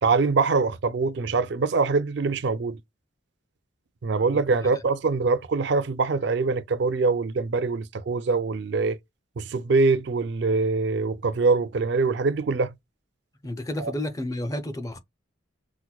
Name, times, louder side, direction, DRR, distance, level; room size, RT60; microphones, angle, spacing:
voice 1, 0.0-2.8 4.0-9.0 9.4-12.7 13.8-13.9, right 4 dB, 55° right, 0.4 m, -24 dB
voice 2, 13.4-15.0, left 1 dB, 15° left, 0.5 m, -31 dB
5.7 x 2.1 x 2.3 m
head